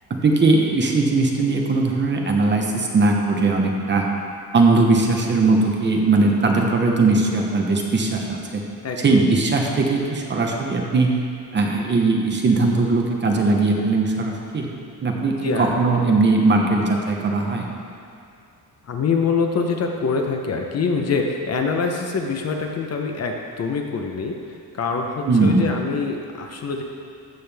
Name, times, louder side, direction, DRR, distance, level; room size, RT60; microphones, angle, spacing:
voice 1, 0.1-4.1 4.5-8.6 9.0-11.1 11.5-14.7 15.0-17.7 25.3-25.7, right 3 dB, 30° right, 0 dB, 1.0 m, -19 dB
voice 2, 8.8-9.3 15.4-15.8 18.8-26.8, left 4 dB, 40° left, 2 dB, 0.8 m, -25 dB
14.0 x 7.6 x 3.5 m, 2.6 s
cardioid pair, 170°, 37 cm